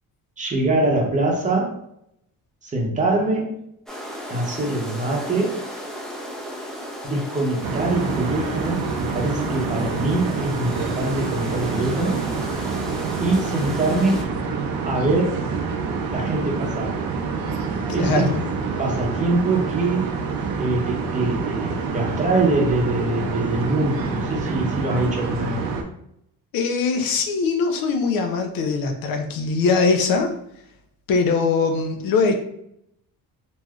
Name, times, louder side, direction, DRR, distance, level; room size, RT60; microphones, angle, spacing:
voice 1, 0.4-1.8 2.6-3.6 4.3-5.6 7.0-12.2 13.2-14.2 14.8-15.4 16.1-16.9 17.9-18.4 18.8-20.1 20.6-25.6, right 2 dB, 20° right, -1 dB, 0.7 m, -23 dB
sound 1, 3.9-14.2, equal, ahead, 0.4 m, -35 dB
sound 2, 7.6-25.8, right 5 dB, 80° right, 0.6 m, -27 dB
voice 2, 18.0-18.3 26.5-30.3 31.1-32.3, left 4 dB, 75° left, 5 dB, 0.6 m, -21 dB
3.1 x 2.6 x 2.3 m, 0.75 s
cardioid pair, 130°, 35 cm